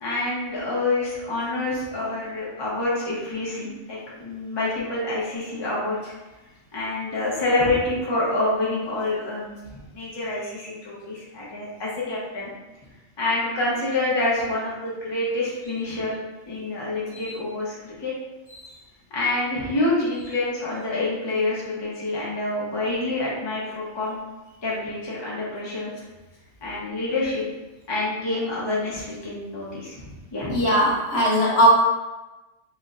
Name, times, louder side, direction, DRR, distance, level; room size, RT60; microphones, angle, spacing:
voice 1, 0.0-6.1 6.7-12.5 13.2-16.1 16.5-18.1 19.1-24.2 24.6-26.0 26.6-27.4 27.9-30.0 30.3-30.5, left 2 dB, 25° left, -6 dB, 0.8 m, -27 dB
voice 2, 30.5-31.7, equal, 60° left, -5 dB, 1.1 m, -18 dB
4.3 x 3.1 x 2.5 m, 1.1 s
omnidirectional pair, 1.3 m